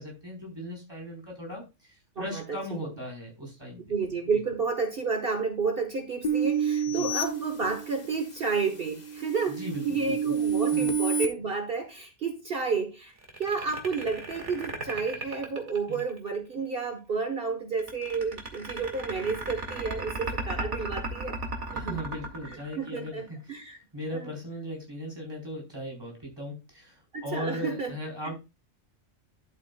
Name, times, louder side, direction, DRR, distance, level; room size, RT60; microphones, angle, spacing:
voice 1, 0.0-3.8 6.9-7.1 9.5-10.2 10.7-10.9 15.9-16.0 21.7-23.4 23.9-28.3, equal, 20° right, 4.4 m, -38 dB
voice 2, 3.9-21.4 21.7-22.0 22.5-23.8 24.1-24.3 27.1-27.9 28.2-28.3, right 4 dB, 50° right, 1.4 m, -31 dB
sound 1, 6.2-8.2 8.7-11.3, right 6 dB, 40° left, 1.1 m, -29 dB
sound 2, 13.2-16.4 17.8-23.3, right 2 dB, 70° right, 2.4 m, -35 dB
11.5 x 8.4 x 2.3 m
omnidirectional pair, 1.3 m